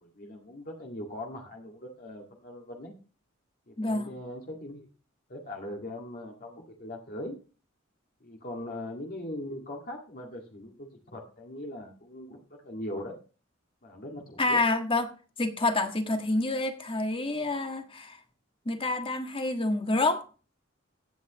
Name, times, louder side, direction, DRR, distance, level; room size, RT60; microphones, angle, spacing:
voice 1, 0.0-2.9 3.7-4.9 5.3-7.4 8.2-13.2 13.8-14.6, left 1 dB, 45° left, 1.9 m, -40 dB
voice 2, 3.8-4.1 14.4-15.1 15.4-18.2 18.6-20.2, left 2 dB, 25° left, 1.6 m, -28 dB
16.5 x 8.4 x 3.0 m
head